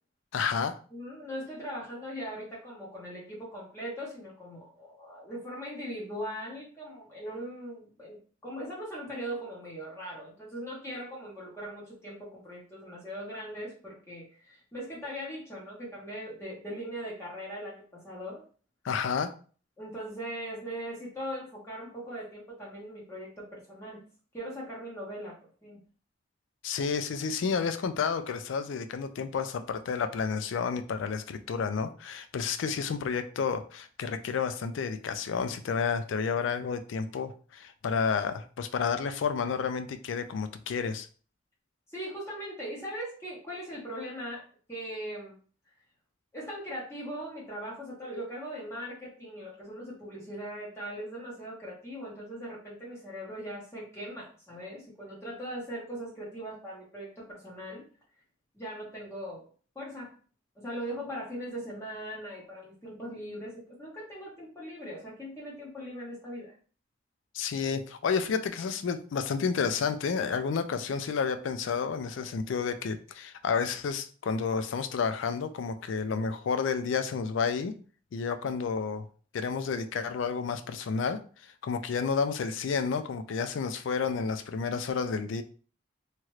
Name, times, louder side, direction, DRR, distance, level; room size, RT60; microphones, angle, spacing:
voice 1, 0.3-0.8 18.8-19.3 26.6-41.1 67.3-77.7 78.1-79.0 79.3-81.2 81.6-85.4, left 5 dB, 80° left, 9 dB, 0.4 m, -30 dB
voice 2, 0.9-18.4 19.8-24.0 24.3-25.8 41.9-45.3 46.3-57.8 58.5-59.4 59.7-60.1 60.6-66.5, equal, 15° left, -6 dB, 0.8 m, -40 dB
2.9 x 2.4 x 3.0 m, 0.40 s
head